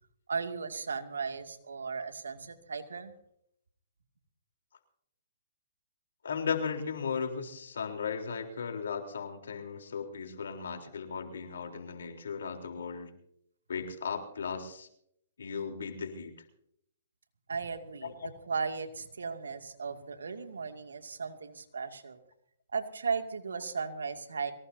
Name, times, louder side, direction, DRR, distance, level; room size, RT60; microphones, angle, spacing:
voice 1, 0.3-3.1 17.5-22.2 22.7-24.5, right 5 dB, 90° right, 6 dB, 2.4 m, -36 dB
voice 2, 6.2-13.1 13.7-14.9 15.4-16.3 18.0-18.1, left 6 dB, 80° left, 4 dB, 3.8 m, -36 dB
23.5 x 19.5 x 2.8 m, 0.73 s
hypercardioid pair, 140°, 0 cm